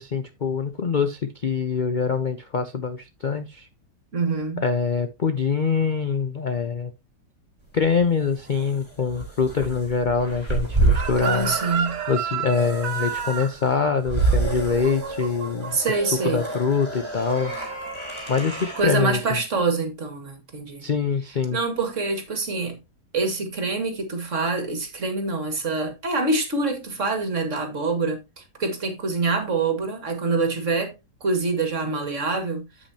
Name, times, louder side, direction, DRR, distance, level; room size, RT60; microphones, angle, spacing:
voice 1, 0.0-3.7 4.6-6.9 7.7-11.5 12.1-15.8 16.2-17.5 18.3-19.4 20.8-21.6, left 5 dB, 50° left, 0.5 m, -24 dB
voice 2, 4.1-4.6 11.2-12.0 15.7-16.4 18.8-20.9 21.5-22.8 23.1-30.9 31.2-32.6, right 3 dB, 45° right, 2.2 m, -25 dB
sound 1, 7.8-18.8, right 3 dB, 15° right, 3.6 m, -28 dB
Chicken rooster, 11.0-15.9 16.2-16.5, right 7 dB, 85° right, 1.9 m, -30 dB
8.6 x 8.3 x 2.8 m
omnidirectional pair, 1.8 m